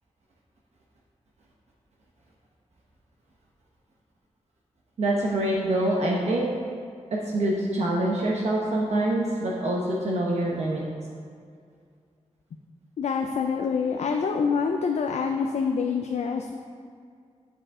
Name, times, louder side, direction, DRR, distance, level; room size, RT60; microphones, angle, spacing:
voice 1, 5.0-6.5 7.1-10.8, right 1 dB, 65° right, -3 dB, 1.0 m, -25 dB
voice 2, 13.0-16.5, left 5 dB, 65° left, 4 dB, 0.4 m, -26 dB
7.6 x 6.8 x 3.7 m, 2.2 s
wide cardioid pair, 125°, 12 cm